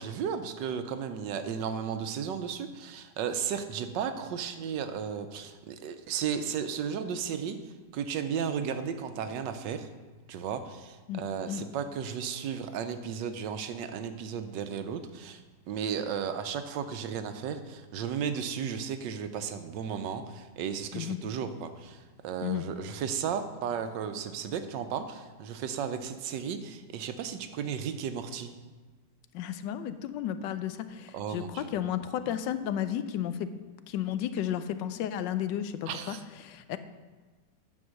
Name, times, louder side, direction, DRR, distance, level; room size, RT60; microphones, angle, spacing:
voice 1, 0.0-7.6 7.9-9.9 10.3-15.4 15.7-28.5 31.1-31.7 35.9-36.2, right 7 dB, 85° right, 9 dB, 1.4 m, -34 dB
voice 2, 29.3-33.5 33.9-36.2 36.4-36.8, left 10 dB, 90° left, 11 dB, 1.3 m, -33 dB
9.6 x 5.4 x 6.4 m, 1.3 s
omnidirectional pair, 1.9 m